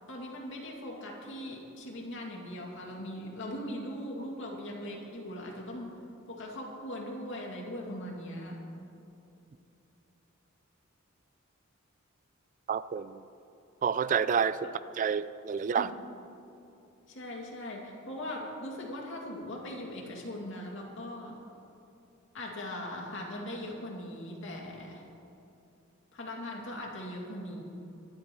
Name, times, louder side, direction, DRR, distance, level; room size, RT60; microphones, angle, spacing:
voice 1, 0.1-6.0 6.3-8.6 14.6-14.7 15.8-15.9 17.1-21.4 22.3-25.1 26.1-27.6, left 1 dB, 60° left, -1 dB, 2.5 m, -40 dB
voice 2, 12.7-13.2 13.8-14.7 15.0-15.9, right 7 dB, 40° right, 15 dB, 0.3 m, -29 dB
24.0 x 11.5 x 3.1 m, 2.8 s
head